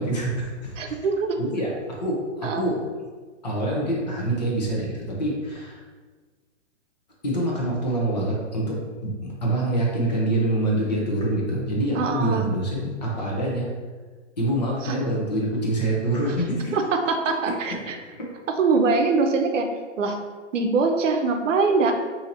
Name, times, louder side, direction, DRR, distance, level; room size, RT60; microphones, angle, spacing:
voice 1, 0.0-0.8 1.4-1.7 2.0-2.8 3.4-5.8 7.2-13.7 14.4-16.7 18.2-18.3, right 1 dB, 35° left, -3 dB, 0.7 m, -25 dB
voice 2, 0.8-1.4 2.4-2.7 11.9-12.5 14.8-15.0 16.3-16.4 16.7-18.0 18.5-20.2 20.5-21.9, right 4 dB, 80° right, 5 dB, 0.7 m, -23 dB
2.8 x 2.8 x 3.8 m, 1.4 s
hypercardioid pair, 175°, 36 cm